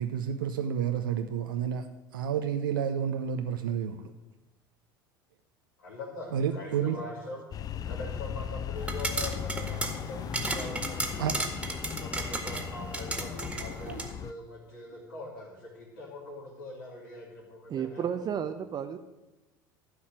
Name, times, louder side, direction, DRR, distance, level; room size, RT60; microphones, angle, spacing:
voice 1, 0.0-1.9 2.1-4.1 6.3-7.0 11.2-11.4 13.9-14.0, right 8 dB, 75° right, 6 dB, 0.8 m, -30 dB
voice 2, 5.8-7.4 7.8-11.3 11.9-18.0, left 2 dB, 75° left, -6 dB, 3.2 m, -42 dB
sound 1, 7.5-14.3, left 8 dB, 35° left, 0.5 m, -37 dB
sound 2, 8.8-14.1, right 2 dB, 10° right, 2.0 m, -35 dB
voice 3, 17.7-19.0, right 8 dB, 35° right, 8 dB, 0.8 m, -32 dB
13.0 x 5.8 x 8.9 m, 1.1 s
figure-of-eight pair, 70°, 11 cm